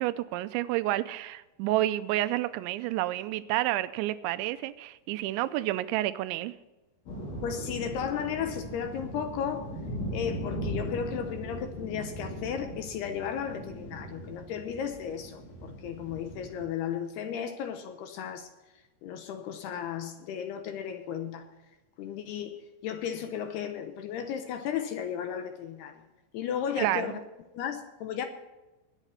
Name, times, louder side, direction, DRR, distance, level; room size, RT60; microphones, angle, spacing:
voice 1, 0.0-6.5 26.8-27.2, right 15 dB, 90° right, 14 dB, 3.0 m, -29 dB
sound 1, 7.1-16.6, equal, 60° left, 6.2 m, -39 dB
voice 2, 7.4-9.7 10.1-18.5 19.0-21.5 22.0-26.0 26.3-27.2 27.5-28.3, left 8 dB, 75° left, 7 dB, 2.7 m, -34 dB
20.0 x 9.1 x 4.3 m, 1.1 s
omnidirectional pair, 5.2 m